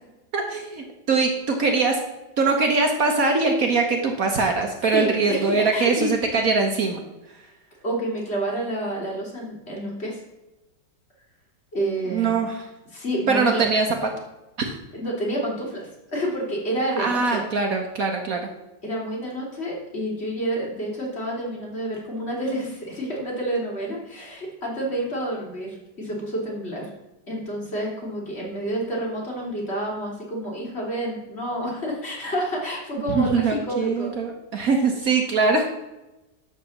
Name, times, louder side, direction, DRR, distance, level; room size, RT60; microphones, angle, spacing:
voice 1, 0.3-2.0 2.4-7.0 12.1-12.7 13.3-14.1 14.6-14.7 17.0-18.5 33.1-35.7, right 4 dB, 55° right, 3 dB, 1.4 m, -22 dB
voice 2, 4.9-6.1 7.8-10.2 11.7-12.3 12.9-13.6 14.9-17.4 18.8-26.9 27.3-34.1, right 1 dB, 35° left, -3 dB, 3.0 m, -29 dB
11.5 x 4.2 x 7.0 m, 1.0 s
omnidirectional pair, 1.9 m